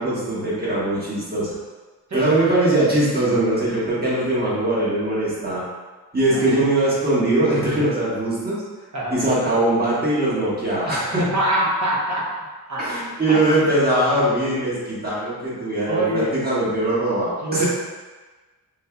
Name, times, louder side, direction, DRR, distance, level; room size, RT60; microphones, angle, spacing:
voice 1, 0.0-1.5 2.1-5.6 6.1-8.6 9.1-11.2 12.8-17.7, right 1 dB, 25° right, -8 dB, 1.3 m, -21 dB
voice 2, 2.1-2.4 6.3-6.5 8.9-9.2 10.8-11.0 11.3-12.4 12.7-13.6 15.9-16.3 17.4-17.6, right 1 dB, 45° right, -5 dB, 1.1 m, -25 dB
5.3 x 2.7 x 2.2 m, 1.3 s
wide cardioid pair, 130°, 39 cm